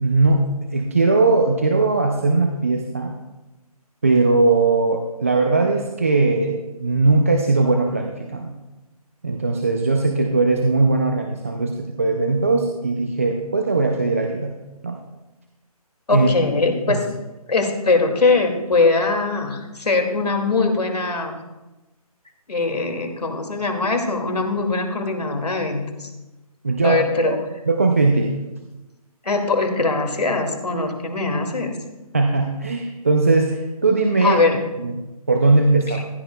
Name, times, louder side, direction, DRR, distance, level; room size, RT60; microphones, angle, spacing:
voice 1, 0.0-3.1 4.0-8.5 9.2-14.5 14.8-15.0 16.1-16.3 16.9-17.0 26.6-27.4 27.7-28.4 32.1-34.4 34.8-35.0 35.3-36.0, right 3 dB, 20° right, 3 dB, 0.4 m, -19 dB
voice 2, 16.1-17.0 17.5-21.4 22.5-26.1 26.8-27.4 29.2-31.7 34.2-34.6 35.9-36.0, left 3 dB, 90° left, 4 dB, 2.3 m, -21 dB
15.5 x 10.5 x 2.3 m, 1.1 s
hypercardioid pair, 170°, 20 cm